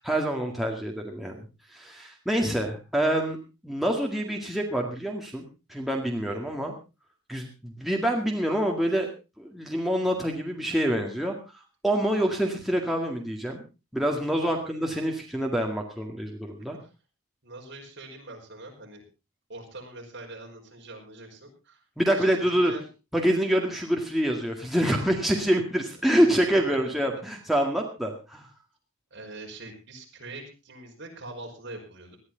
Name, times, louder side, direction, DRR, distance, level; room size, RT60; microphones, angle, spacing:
voice 1, 0.0-1.4 1.7-3.4 3.6-5.4 5.7-6.7 7.3-9.1 9.4-11.3 11.8-13.6 13.9-16.8 22.0-22.7 23.1-28.5, right 1 dB, ahead, 0 dB, 2.0 m, -26 dB
voice 2, 6.2-6.6 14.4-14.6 16.7-16.9 17.4-19.0 19.5-21.8 22.1-22.9 26.1-27.1 29.1-32.2, right 2 dB, 55° right, 0 dB, 5.4 m, -43 dB
19.0 x 13.0 x 3.9 m, 0.30 s
head